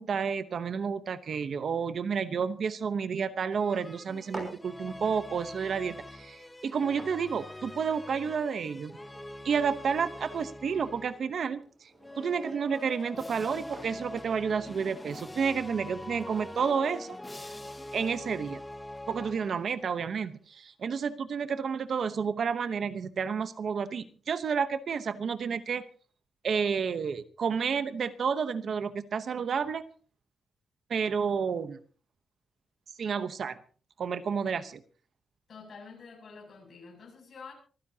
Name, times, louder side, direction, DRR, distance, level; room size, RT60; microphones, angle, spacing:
voice 1, 0.0-9.0 9.4-11.9 12.2-17.2 17.9-18.6 19.1-25.8 26.4-29.8 30.9-31.8 33.0-33.6 34.0-34.8, right 6 dB, 55° right, 12 dB, 0.9 m, -30 dB
sound 1, 3.5-11.4 12.0-19.9, left 1 dB, 10° left, 0.7 m, -44 dB
sound 2, 4.3-17.9, right 2 dB, 25° right, 6.7 m, -52 dB
voice 2, 35.5-37.5, left 5 dB, 50° left, 1 dB, 7.1 m, -48 dB
25.5 x 15.0 x 2.8 m, 0.40 s
wide cardioid pair, 160°, 0 cm